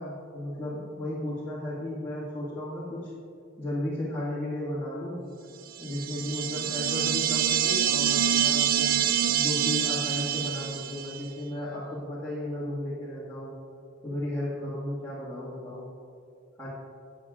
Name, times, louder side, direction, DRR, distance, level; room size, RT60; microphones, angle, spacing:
voice 1, 0.0-3.1 3.6-5.2 5.8-13.5 14.0-15.9 16.6-16.7, left 1 dB, 10° left, -10 dB, 1.8 m, -34 dB
sound 1, 5.8-11.2, right 9 dB, 45° right, 0.3 m, -26 dB
15.5 x 8.7 x 2.4 m, 2.5 s
head